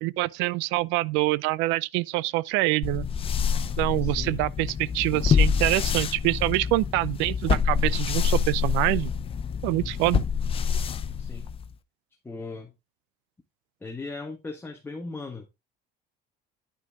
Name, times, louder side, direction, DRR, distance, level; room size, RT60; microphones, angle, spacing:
voice 1, 0.0-3.1 3.8-9.1 9.6-10.2, right 19 dB, 85° right, 0.5 m, -25 dB
sound 1, 2.8-11.7, left 7 dB, 30° left, 0.7 m, -26 dB
voice 2, 4.0-4.4 11.2-11.5 12.2-12.7 13.8-15.5, left 3 dB, 10° left, 1.4 m, -38 dB
9.8 x 6.5 x 3.6 m
cardioid pair, 140°, 19 cm